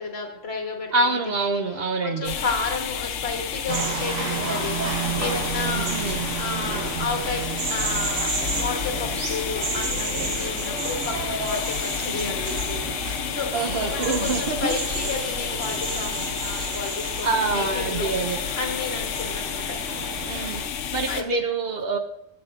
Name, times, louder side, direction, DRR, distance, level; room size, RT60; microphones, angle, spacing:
voice 1, 0.0-7.4 7.7-8.3 8.6-12.8 13.3-19.7 21.1-21.2, left 4 dB, 60° left, 2 dB, 1.4 m, -32 dB
voice 2, 0.9-2.3 5.6-6.2 12.0-12.3 13.5-15.0 17.2-18.4 20.2-20.6 20.9-22.0, right 3 dB, 60° right, 5 dB, 0.8 m, -26 dB
sound 1, 2.2-21.2, left 8 dB, 80° left, 1.0 m, -30 dB
sound 2, 3.7-20.7, right 4 dB, 80° right, 1.5 m, -31 dB
10.5 x 7.2 x 2.4 m, 0.82 s
omnidirectional pair, 1.3 m